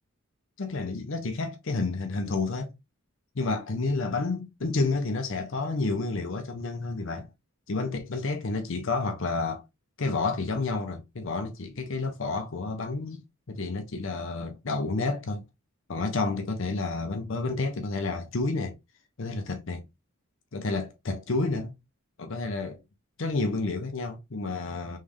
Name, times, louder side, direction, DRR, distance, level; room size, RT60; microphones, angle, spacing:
voice 1, 0.6-2.7 3.4-7.3 7.7-9.6 10.0-13.2 13.5-15.4 15.9-18.8 19.2-19.8 20.5-21.7 22.2-22.8 23.2-25.0, left 3 dB, 55° left, 0.6 m, -30 dB
3.4 x 3.2 x 3.5 m
head